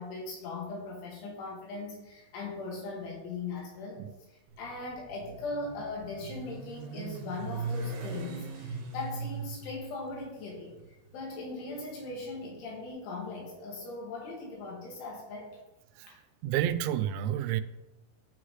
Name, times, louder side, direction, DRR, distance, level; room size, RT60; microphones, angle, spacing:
voice 1, 0.0-4.0 4.6-10.7 11.1-15.6 16.1-16.2, left 3 dB, 90° left, -2 dB, 4.5 m, -39 dB
Motorcycle, 4.5-12.7, right 3 dB, 65° right, 2.9 m, -40 dB
voice 2, 16.4-17.6, right 11 dB, 90° right, 12 dB, 2.9 m, -29 dB
14.0 x 5.7 x 3.2 m, 1.0 s
omnidirectional pair, 5.2 m